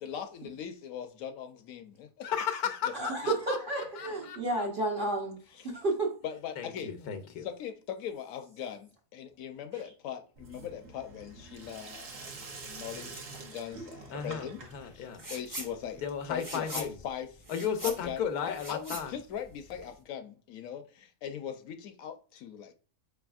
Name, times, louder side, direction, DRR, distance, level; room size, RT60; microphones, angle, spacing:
voice 1, 0.0-2.3 3.2-3.3 5.5-5.7 6.2-6.9 7.4-12.3 12.6-17.4 17.8-22.7, left 8 dB, 70° left, 0.9 m, -40 dB
voice 2, 2.2-4.7 6.6-7.5 14.1-15.2 16.0-17.0 17.5-19.1, left 7 dB, 90° left, 1.2 m, -35 dB
voice 3, 2.9-5.4 5.7-6.1, right 2 dB, 45° right, 0.8 m, -31 dB
Sink (filling or washing), 10.4-17.1, right 3 dB, 60° right, 1.2 m, -47 dB
sound 1, 15.1-15.7 16.0-20.0, right 1 dB, 25° right, 0.4 m, -42 dB
4.7 x 3.4 x 2.3 m
omnidirectional pair, 1.6 m